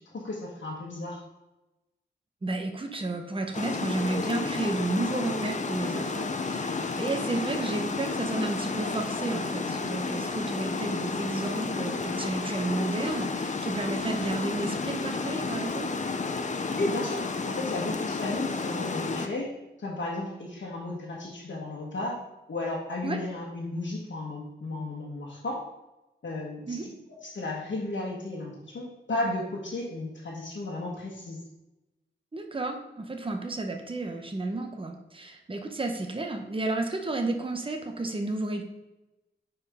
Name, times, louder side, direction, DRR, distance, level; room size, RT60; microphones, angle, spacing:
voice 1, 0.1-1.2 16.7-22.2 22.5-25.6 26.2-26.9 27.2-31.4, left 2 dB, 70° left, -6 dB, 1.4 m, -34 dB
voice 2, 2.4-15.9 23.0-23.2 26.7-26.9 32.3-38.6, right 2 dB, 25° right, 4 dB, 0.9 m, -32 dB
Water, 3.5-19.3, left 4 dB, 40° left, 0.6 m, -31 dB
9.3 x 4.7 x 3.6 m, 1.0 s
wide cardioid pair, 120°, 20 cm